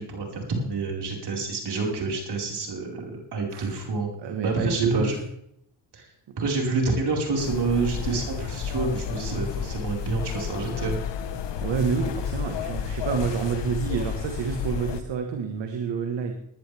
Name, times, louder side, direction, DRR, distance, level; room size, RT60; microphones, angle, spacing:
voice 1, 0.0-4.1 4.4-5.1 5.9-6.1 6.4-11.0, right 3 dB, 65° right, 0 dB, 5.1 m, -28 dB
voice 2, 4.2-5.2 11.6-16.3, right 6 dB, 80° right, 5 dB, 1.7 m, -28 dB
sound 1, 7.4-15.0, left 7 dB, 75° left, 1.3 m, -31 dB
19.5 x 11.5 x 3.5 m, 0.72 s
cardioid pair, 60°, 43 cm